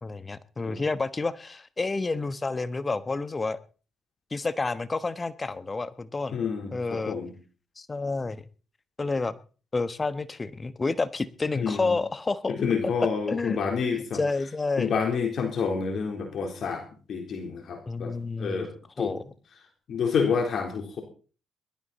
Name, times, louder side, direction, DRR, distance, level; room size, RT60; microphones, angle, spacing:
voice 1, 0.0-3.6 4.3-6.4 6.7-7.2 7.8-8.4 9.0-9.3 9.7-12.6 13.3-13.6 13.9-14.9 17.9-18.7 19.0-19.2, left 3 dB, 30° left, 15 dB, 1.2 m, -29 dB
voice 2, 6.3-7.3 11.6-11.9 12.5-14.2 14.8-18.7 19.0-19.1 19.9-21.0, left 5 dB, 60° left, 4 dB, 3.8 m, -28 dB
20.5 x 12.5 x 4.2 m, 0.38 s
hypercardioid pair, 50°, 0 cm